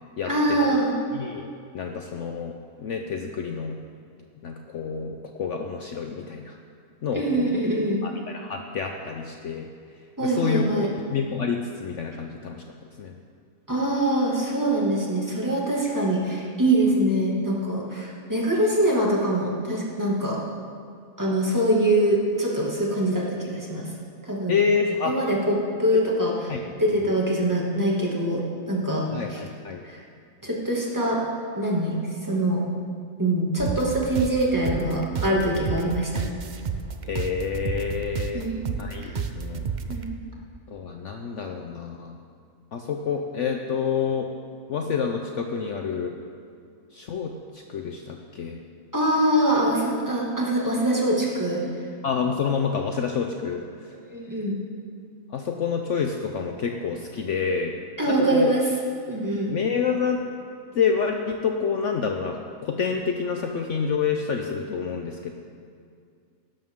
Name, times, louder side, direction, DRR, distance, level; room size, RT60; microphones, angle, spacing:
voice 1, 0.3-1.0 7.1-8.0 10.2-10.9 13.7-20.4 21.2-23.9 24.2-24.6 25.0-26.5 26.8-29.4 29.8-30.0 30.4-31.2 31.6-32.6 33.2-36.1 38.3-38.6 39.0-39.2 39.9-40.1 48.9-51.6 54.1-54.6 58.0-58.7 59.1-59.6, right 1 dB, 10° right, -4 dB, 2.1 m, -24 dB
voice 2, 1.1-2.5 2.8-3.8 4.4-6.5 7.0-7.5 8.0-9.7 10.2-10.7 11.1-12.6 13.0-13.1 24.5-25.1 26.5-26.6 29.1-29.8 37.1-38.4 38.8-39.6 40.7-42.2 42.7-44.3 44.7-46.1 46.9-47.3 47.7-48.6 52.0-53.6 55.3-57.7 58.0-58.5 59.5-60.2 60.7-65.3, left 6 dB, 60° left, 3 dB, 0.9 m, -28 dB
sound 1, 33.6-40.1, right 6 dB, 60° right, 0.5 m, -32 dB
16.5 x 12.5 x 3.7 m, 2.3 s
omnidirectional pair, 1.6 m